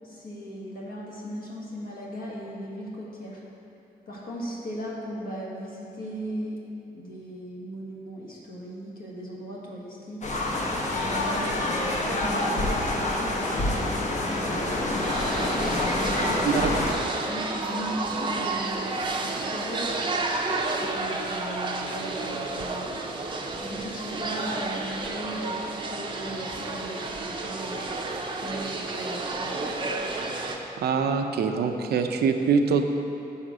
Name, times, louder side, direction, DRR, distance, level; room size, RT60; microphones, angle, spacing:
voice 1, 0.0-3.4 4.1-6.6 6.9-10.3 10.9-14.8 15.7-16.7 17.2-20.1 20.7-28.1 28.4-29.7, equal, 65° left, -4 dB, 1.5 m, -37 dB
sound 1, 10.2-16.9, left 2 dB, 45° left, 0.9 m, -27 dB
sound 2, 15.0-30.6, right 3 dB, 30° right, 0.6 m, -31 dB
voice 2, 30.8-32.8, right 5 dB, 85° right, 5 dB, 0.5 m, -24 dB
6.4 x 4.9 x 6.1 m, 2.9 s
wide cardioid pair, 155°, 16 cm